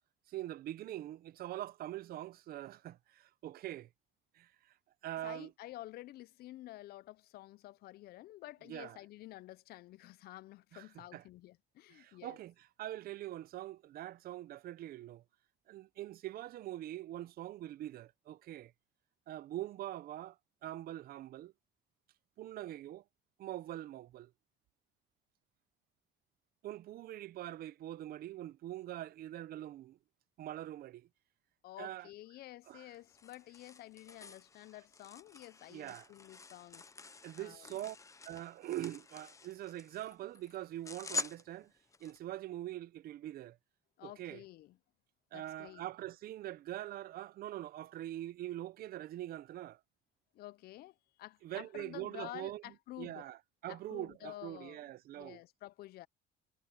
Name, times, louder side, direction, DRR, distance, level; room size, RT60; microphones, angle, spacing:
voice 1, 0.3-3.9 4.3-4.5 5.0-5.5 8.7-9.0 10.7-10.9 11.1-11.2 11.9-15.2 15.7-18.7 19.3-20.4 20.6-21.5 22.4-23.0 23.4-24.3 26.6-30.0 30.4-31.1 31.8-32.1 32.7-32.8 35.7-36.1 37.2-38.0 38.2-41.7 42.0-43.6 44.0-44.4 45.3-49.8 51.4-52.6 53.0-53.4 53.6-55.4, right 14 dB, 65° right, 0.7 m, -43 dB
voice 2, 5.2-12.4 31.6-36.8 37.4-37.8 44.0-44.8 45.3-45.8 50.3-53.3 53.7-54.8 55.1-56.1, left 16 dB, 70° left, 0.5 m, -50 dB
sound 1, 32.7-42.2, left 3 dB, 20° left, 0.6 m, -47 dB
cardioid pair, 110°, 17 cm